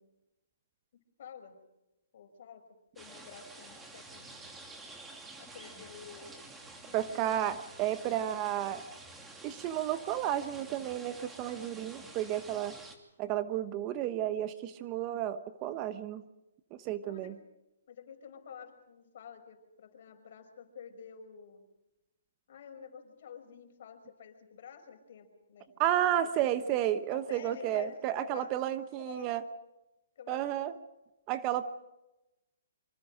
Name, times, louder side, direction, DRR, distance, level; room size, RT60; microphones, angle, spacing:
voice 1, 1.2-1.6 2.1-2.6 2.9-4.5 5.4-6.5 6.9-7.5 17.0-17.4 17.9-21.6 22.5-26.7 27.1-29.3 30.2-30.5, left 7 dB, 55° left, 6 dB, 5.6 m, -50 dB
sound 1, 3.0-13.0, right 2 dB, 10° right, 2.8 m, -50 dB
voice 2, 6.9-8.9 9.4-12.7 13.2-16.2 16.8-17.3 25.8-29.4 30.3-30.7 31.3-31.6, right 11 dB, 25° right, 12 dB, 1.1 m, -32 dB
26.0 x 25.5 x 5.1 m, 0.93 s
hypercardioid pair, 155°, 0 cm